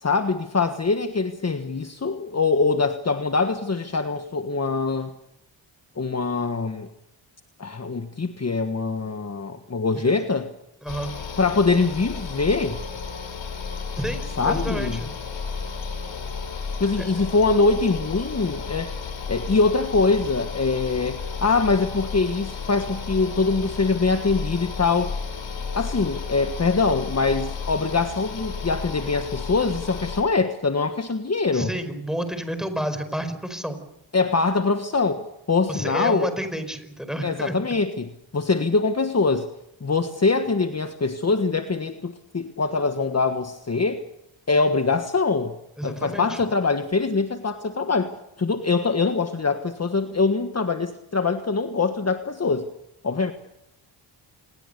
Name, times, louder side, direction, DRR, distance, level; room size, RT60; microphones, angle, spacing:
voice 1, 0.0-5.1 6.0-6.9 7.6-10.5 11.4-12.8 14.4-15.0 16.8-18.9 19.3-25.1 25.8-31.7 34.1-36.3 37.2-39.5 39.8-44.0 44.5-45.6 45.8-52.7 53.0-53.3, left 4 dB, 30° left, 8 dB, 1.5 m, -23 dB
voice 2, 10.8-11.1 14.0-15.1 17.0-17.1 31.5-33.8 35.7-37.5 45.8-46.4, right 1 dB, ahead, 9 dB, 4.9 m, -30 dB
sound 1, 10.9-30.2, left 5 dB, 65° left, 5.1 m, -33 dB
27.5 x 20.5 x 6.8 m, 0.83 s
cardioid pair, 90°, 48 cm